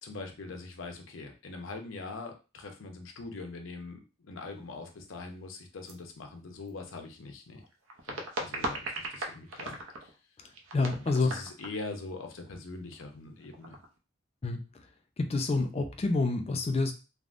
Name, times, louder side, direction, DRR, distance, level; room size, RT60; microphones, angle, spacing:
voice 1, 0.0-7.6 8.1-10.1 10.9-13.8, left 3 dB, 80° left, 4 dB, 0.6 m, -42 dB
sound 1, 4.5-4.6 4.9-5.0 5.9-6.0 6.5-6.7 7.6-10.2 10.5-11.9 12.2-12.3 12.5-12.6 12.9-13.1 13.4-14.0, right 1 dB, 85° right, 0.6 m, -38 dB
voice 2, 10.7-11.4 14.4-14.6 15.2-16.9, left 3 dB, 30° left, 5 dB, 0.4 m, -28 dB
3.5 x 2.0 x 2.4 m, 0.31 s
head